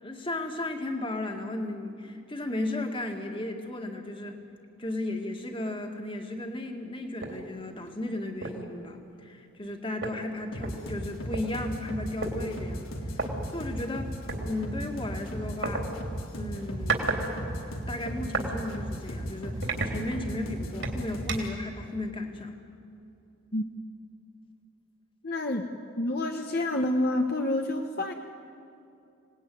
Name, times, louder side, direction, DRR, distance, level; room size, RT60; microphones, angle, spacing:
voice 1, 0.0-4.4 4.8-12.8 13.1-14.1 14.4-15.9 16.3-22.6, left 1 dB, 25° left, 4 dB, 2.1 m, -35 dB
sound 1, 7.2-7.4 7.9-8.0 8.4-8.7 9.7-9.8 10.0-11.4 12.2-12.3 13.1-13.3 14.3-14.4 15.6-15.8 16.5-17.2 17.5-18.5 19.0-19.1 19.6-20.4 20.8-21.6, right 3 dB, 60° right, 3.3 m, -32 dB
sound 2, 10.5-21.5, equal, 85° left, 3.3 m, -36 dB
voice 2, 25.2-25.7 26.0-28.1, left 1 dB, 50° left, 3 dB, 1.2 m, -28 dB
27.0 x 19.0 x 9.4 m, 2.7 s
head